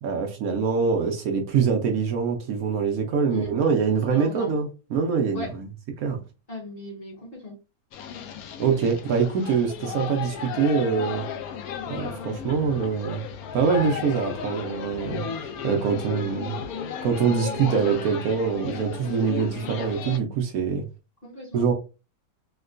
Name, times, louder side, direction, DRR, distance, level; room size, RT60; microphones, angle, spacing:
voice 1, 0.0-5.7 6.0-6.2 8.6-11.2 11.9-13.2 13.5-16.6 17.0-20.8 21.5-21.7, right 6 dB, 75° right, 0.8 m, -24 dB
voice 2, 4.1-4.5 5.3-5.5 6.5-7.6 21.2-21.7, left 2 dB, 35° left, 1.1 m, -37 dB
sound 1, 7.9-20.2, left 7 dB, 80° left, 0.8 m, -34 dB
4.5 x 2.2 x 2.4 m
omnidirectional pair, 2.1 m